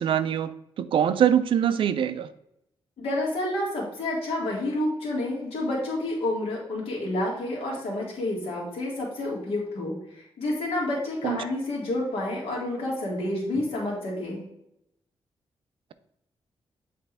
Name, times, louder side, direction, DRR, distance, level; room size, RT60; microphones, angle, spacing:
voice 1, 0.0-2.3 11.2-11.4, right 9 dB, 65° right, 13 dB, 0.4 m, -23 dB
voice 2, 3.0-14.4, left 1 dB, 90° left, -3 dB, 2.1 m, -29 dB
8.0 x 3.4 x 3.4 m, 0.80 s
wide cardioid pair, 175°, 9 cm